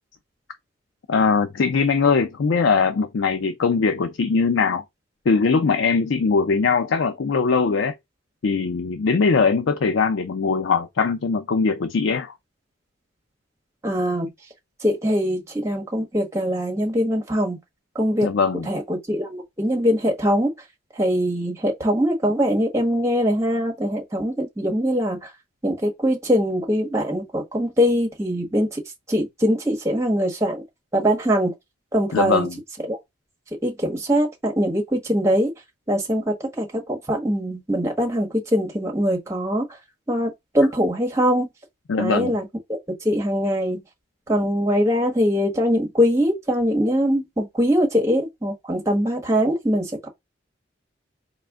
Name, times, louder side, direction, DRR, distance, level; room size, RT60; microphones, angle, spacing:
voice 1, 1.1-4.8 5.3-7.9 8.4-12.3 18.2-18.7 32.1-32.5 41.9-42.4, left 5 dB, 85° left, 0.5 m, -21 dB
voice 2, 13.8-14.3 14.8-17.6 17.9-18.3 18.7-20.5 20.9-25.3 25.6-28.8 29.1-30.6 30.9-31.5 31.9-32.5 32.8-33.0 33.6-35.5 35.9-39.6 40.1-41.5 42.0-43.8 44.3-50.1, equal, 15° right, 1.2 m, -22 dB
4.2 x 2.1 x 3.5 m
head